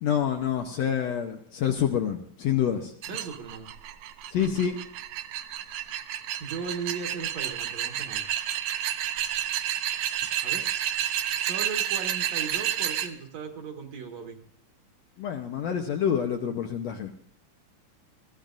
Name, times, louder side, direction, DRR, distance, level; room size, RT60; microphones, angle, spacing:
voice 1, 0.0-2.9 4.3-4.8 15.2-17.1, left 9 dB, 70° left, 4 dB, 1.7 m, -27 dB
sound 1, 3.0-13.1, right 11 dB, 85° right, 2.3 m, -30 dB
voice 2, 3.1-3.7 6.4-8.3 10.4-10.6 11.4-14.4, right 5 dB, 65° right, 4 dB, 2.2 m, -37 dB
20.5 x 15.0 x 2.6 m, 0.65 s
omnidirectional pair, 3.7 m